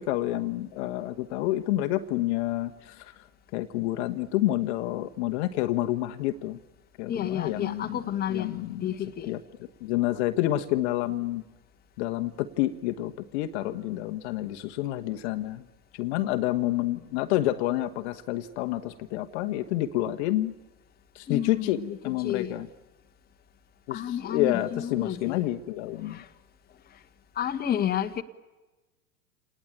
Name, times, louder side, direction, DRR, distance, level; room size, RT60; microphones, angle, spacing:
voice 1, 0.0-3.2 3.5-6.6 7.0-8.0 8.3-8.9 9.3-9.4 9.8-11.4 12.0-15.6 15.9-20.5 21.1-21.8 22.0-22.7 23.9-26.2, left 15 dB, 45° left, 1.3 m, -29 dB
voice 2, 7.1-8.5 8.8-9.3 21.3-22.5 23.9-25.4 26.0-26.3 27.4-28.2, left 10 dB, 20° left, 1.5 m, -31 dB
28.0 x 19.5 x 8.9 m
figure-of-eight pair, 95°, 45 cm